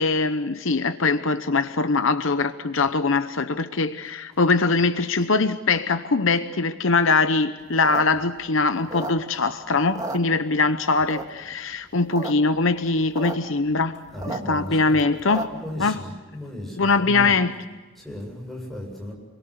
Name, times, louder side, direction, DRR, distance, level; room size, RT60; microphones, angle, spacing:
voice 1, 0.0-13.9 14.3-15.5 15.8-16.0 16.8-17.5, left 3 dB, 65° left, 0.9 m, -22 dB
sound 1, 7.7-9.5 9.8-10.7 11.1-11.5 11.9-12.3 12.6-12.7 12.8-13.3 13.7-15.7, right 2 dB, 15° right, 1.9 m, -33 dB
voice 2, 14.1-15.0 15.5-17.3 18.0-19.1, left 1 dB, ahead, 7.6 m, -35 dB
28.5 x 22.5 x 8.0 m
head